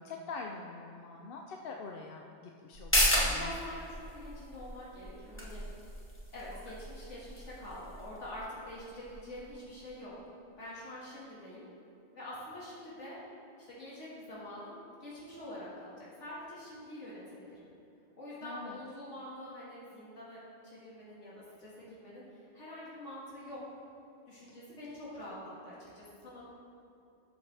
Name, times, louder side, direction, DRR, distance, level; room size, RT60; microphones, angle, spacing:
voice 1, 0.0-3.6 18.4-18.8, left 4 dB, 60° left, 2 dB, 0.7 m, -44 dB
sound 1, 2.7-9.9 10.2-10.3, equal, 10° left, 1.4 m, -34 dB
voice 2, 3.1-5.6 6.3-10.1 10.6-11.6 12.1-13.2 13.6-17.6 18.2-21.3 21.6-23.6 24.3-26.4, left 1 dB, 85° left, -8 dB, 2.3 m, -46 dB
12.5 x 6.9 x 3.4 m, 2.8 s
omnidirectional pair, 1.2 m